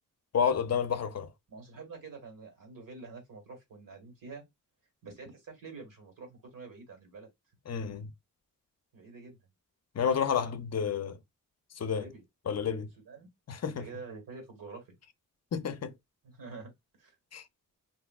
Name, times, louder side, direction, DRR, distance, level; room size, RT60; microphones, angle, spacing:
voice 1, 0.3-1.3 7.7-8.1 10.0-11.2 11.8-12.0 12.5-12.9 13.5-13.8 15.5-15.9 17.3-17.4, left 7 dB, 50° left, 0.5 m, -30 dB
voice 2, 1.5-4.4 5.0-7.3 8.9-9.4 11.9-12.2 13.0-13.3 13.7-14.9 16.2-16.7 17.0-17.1, right 4 dB, 70° right, 1.6 m, -47 dB
3.3 x 2.6 x 2.3 m
wide cardioid pair, 110°, 34 cm